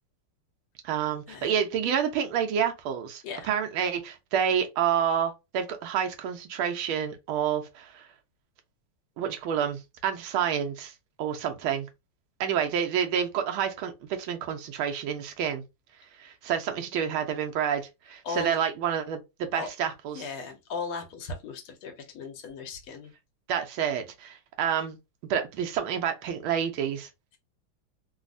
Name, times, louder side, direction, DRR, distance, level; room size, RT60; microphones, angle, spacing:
voice 1, 0.8-8.1 9.2-10.9 11.2-11.9 12.4-15.6 16.2-20.2 23.5-25.0 25.3-27.1, right 8 dB, 75° right, 1.4 m, -29 dB
voice 2, 18.2-18.6 19.5-19.7 20.1-23.1, left 4 dB, 80° left, 1.6 m, -37 dB
3.9 x 2.0 x 2.4 m
omnidirectional pair, 2.4 m